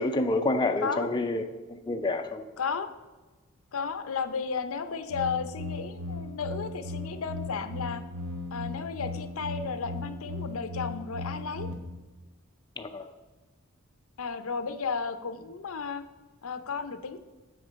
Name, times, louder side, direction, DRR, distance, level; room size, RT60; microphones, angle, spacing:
voice 1, 0.0-1.4 1.9-2.4 12.8-13.1, left 2 dB, 20° left, 5 dB, 0.4 m, -28 dB
voice 2, 2.6-2.9 3.7-8.0 8.5-11.7 14.2-16.0 16.4-17.2, left 5 dB, 75° left, 10 dB, 0.6 m, -33 dB
sound 1, 5.1-11.7, left 2 dB, 85° right, 1.4 m, -37 dB
7.9 x 6.2 x 5.2 m, 1.2 s
head